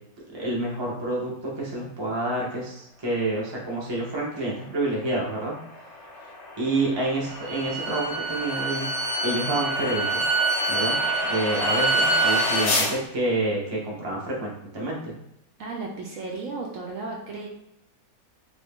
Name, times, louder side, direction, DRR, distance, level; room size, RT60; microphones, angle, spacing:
voice 1, 0.3-5.6 6.6-8.9 9.2-10.3 10.7-11.0 11.2-15.1, right 2 dB, 25° right, -4 dB, 0.6 m, -28 dB
sound 1, 4.3-12.9, left 2 dB, 60° left, 0.8 m, -32 dB
Bowed string instrument, 7.3-12.6, right 3 dB, 85° right, 1.3 m, -26 dB
voice 2, 15.6-17.5, right 3 dB, 70° right, -1 dB, 0.9 m, -34 dB
2.7 x 2.6 x 3.5 m, 0.79 s
omnidirectional pair, 1.6 m